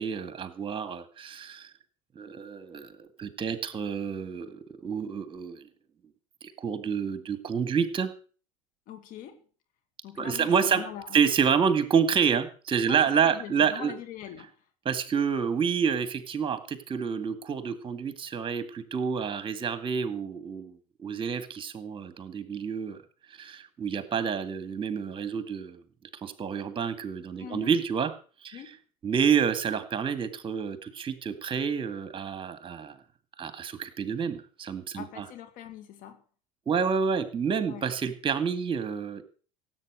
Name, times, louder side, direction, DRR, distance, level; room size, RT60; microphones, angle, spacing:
voice 1, 0.0-1.7 2.2-5.6 6.4-8.1 10.2-10.8 11.1-13.9 14.9-20.8 21.0-23.0 23.4-25.8 26.2-28.1 28.4-28.6 29.0-33.0 33.4-35.3 36.7-39.2, right 6 dB, 30° right, 12 dB, 2.1 m, -28 dB
voice 2, 8.9-9.4 10.0-11.2 12.9-14.5 27.4-27.7 28.5-28.8 34.9-36.2 37.7-37.9, left 10 dB, 50° left, 8 dB, 2.4 m, -42 dB
16.5 x 8.3 x 6.5 m, 0.40 s
hypercardioid pair, 75°, 18 cm